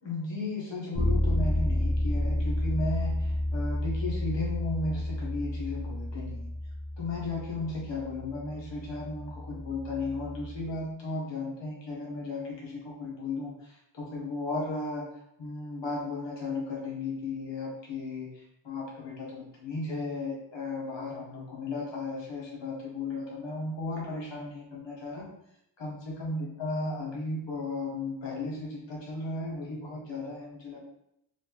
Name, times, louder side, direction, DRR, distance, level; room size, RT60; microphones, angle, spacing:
voice 1, 0.0-6.5 7.0-15.1 15.4-25.3 25.8-30.8, left 3 dB, 65° left, -4 dB, 1.5 m, -35 dB
Bass guitar, 0.9-10.7, left 1 dB, 10° right, 0.8 m, -31 dB
4.1 x 2.8 x 3.5 m, 0.78 s
wide cardioid pair, 135°, 46 cm